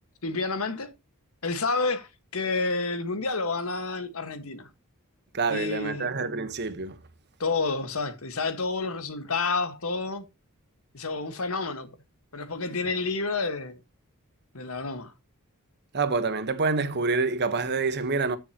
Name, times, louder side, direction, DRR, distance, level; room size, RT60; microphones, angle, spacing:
voice 1, 0.2-0.9 1.4-4.7 5.5-6.1 7.4-10.3 10.9-11.9 12.3-13.8 14.5-15.1, left 3 dB, 70° left, 1.6 m, -29 dB
voice 2, 5.3-7.0 15.9-18.4, right 4 dB, 50° right, 1.2 m, -27 dB
13.5 x 6.8 x 2.9 m
head